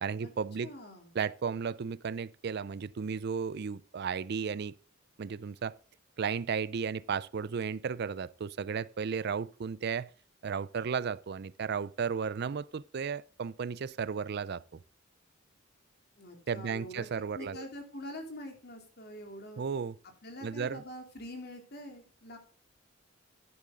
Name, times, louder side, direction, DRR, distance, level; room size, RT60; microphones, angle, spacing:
voice 1, 0.0-0.7 1.1-4.7 5.2-5.7 6.2-10.1 10.4-14.8 16.5-17.7 19.6-20.0 20.4-20.8, right 6 dB, 55° right, 0.4 m, -34 dB
voice 2, 0.6-1.1 16.2-17.1 17.3-19.6 20.2-22.4, left 1 dB, 50° left, 3.1 m, -45 dB
11.5 x 10.5 x 3.7 m
head